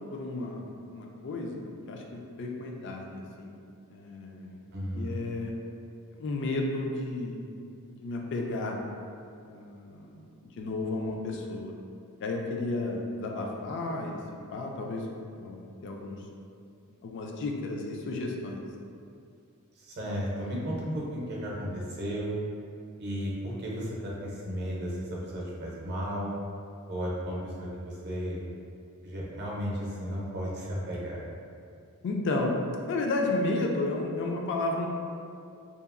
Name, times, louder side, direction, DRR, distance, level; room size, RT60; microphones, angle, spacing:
voice 1, 0.1-0.6 0.9-3.6 3.9-4.6 4.9-5.5 6.2-7.4 7.9-8.8 9.4-10.2 10.6-11.7 12.2-14.2 14.5-15.1 15.4-15.6 15.8-16.2 17.0-18.6 32.0-32.6 32.9-34.9, left 2 dB, 55° left, 1 dB, 0.3 m, -32 dB
voice 2, 4.7-5.2 19.8-22.4 23.0-26.3 26.9-28.4 29.0-31.2, equal, 50° right, -4 dB, 0.6 m, -34 dB
2.8 x 2.3 x 2.4 m, 2.4 s
head